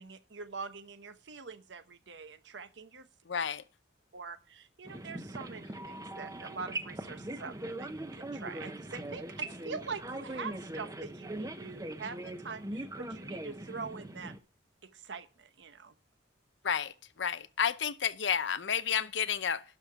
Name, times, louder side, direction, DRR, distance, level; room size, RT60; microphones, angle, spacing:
voice 1, 0.0-3.1 4.1-14.3 14.8-15.9, right 5 dB, 75° right, 0.9 m, -44 dB
voice 2, 3.3-3.6 16.6-19.6, left 7 dB, 75° left, 0.7 m, -31 dB
sound 1, 4.8-14.4, right 1 dB, 20° right, 0.8 m, -41 dB
12.0 x 6.7 x 4.6 m
head